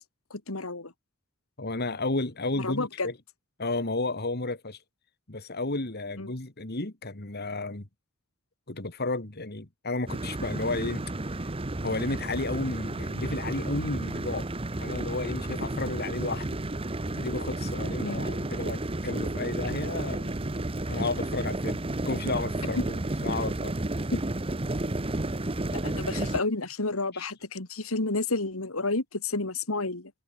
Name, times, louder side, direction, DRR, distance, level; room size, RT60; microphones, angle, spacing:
voice 1, 0.3-0.9 2.6-3.1 6.2-6.3 18.0-18.2 24.1-24.2 25.7-30.1, left 3 dB, 75° left, 2.6 m, -30 dB
voice 2, 1.6-3.1 3.6-4.8 5.3-7.8 8.7-11.0 11.8-14.5 14.8-16.6 17.1-20.3 20.9-23.7 27.1-27.2, left 2 dB, 50° left, 2.3 m, -32 dB
sound 1, 10.1-26.4, right 2 dB, 25° right, 1.0 m, -32 dB
head